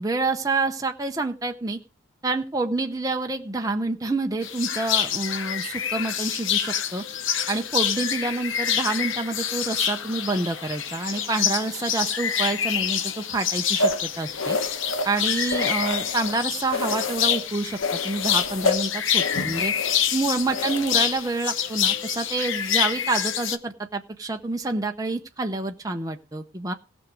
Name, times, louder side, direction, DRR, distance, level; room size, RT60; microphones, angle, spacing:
voice 1, 0.0-1.8 2.2-7.0 7.5-14.6 15.0-19.7 20.1-26.7, right 3 dB, 15° right, 4 dB, 0.7 m, -28 dB
sound 1, 4.4-23.6, left 9 dB, 70° left, 0.9 m, -27 dB
sound 2, 13.8-16.4 16.7-17.5 17.8-21.3, left 3 dB, 85° left, 1.2 m, -29 dB
17.5 x 6.3 x 4.7 m, 0.33 s
head